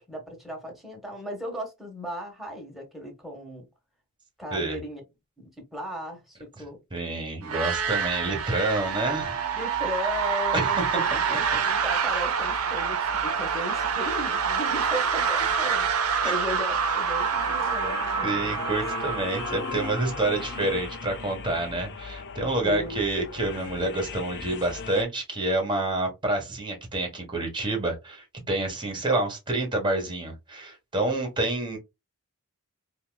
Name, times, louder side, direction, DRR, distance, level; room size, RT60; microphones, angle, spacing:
voice 1, 0.0-3.7 4.4-5.0 5.4-6.8 9.5-18.9 22.6-23.0, equal, ahead, 1.5 m, -36 dB
voice 2, 6.9-9.4 10.5-10.9 11.3-11.4 16.2-16.3 18.2-31.8, right 2 dB, 20° right, 1.5 m, -28 dB
sound 1, 7.4-21.1, right 6 dB, 75° right, 0.7 m, -27 dB
sound 2, 7.7-25.0, left 5 dB, 50° left, 0.6 m, -40 dB
4.7 x 2.8 x 2.3 m
head